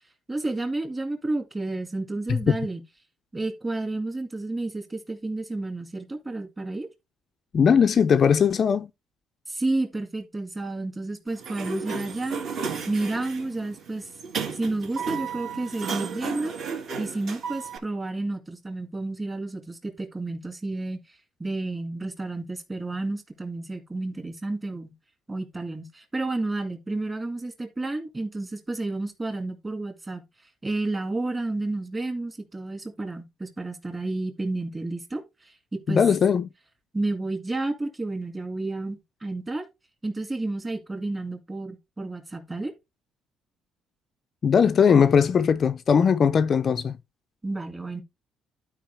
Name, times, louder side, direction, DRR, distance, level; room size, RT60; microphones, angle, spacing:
voice 1, 0.3-2.8 3.3-6.9 9.5-12.4 12.9-14.1 14.5-21.0 21.4-24.9 25.3-30.2 30.6-35.2 35.7-36.0 36.9-39.7 40.0-42.7 47.4-48.0, right 2 dB, 15° right, 2.1 m, -31 dB
voice 2, 7.5-8.9 35.9-36.5 44.4-47.0, left 7 dB, 35° left, 0.4 m, -19 dB
Sliding door, 11.3-17.8, right 5 dB, 55° right, 2.7 m, -34 dB
12.5 x 4.8 x 3.4 m
cardioid pair, 160°, 0 cm